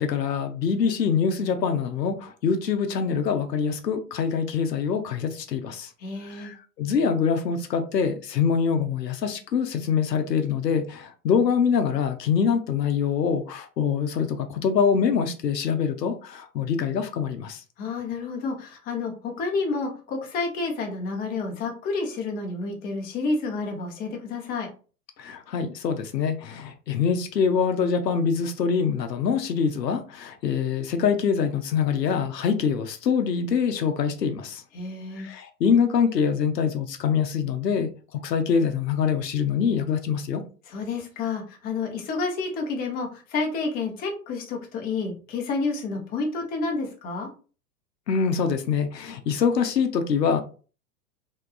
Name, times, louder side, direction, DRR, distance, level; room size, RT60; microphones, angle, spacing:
voice 1, 0.0-5.9 6.3-17.6 25.2-34.6 35.2-37.9 38.2-40.4 48.1-50.4, left 6 dB, 90° left, 0.6 m, -24 dB
voice 2, 6.0-6.5 17.8-24.7 34.7-35.3 40.7-47.3, left 3 dB, 20° left, 0.5 m, -30 dB
2.8 x 2.2 x 2.3 m
figure-of-eight pair, 100°, 48 cm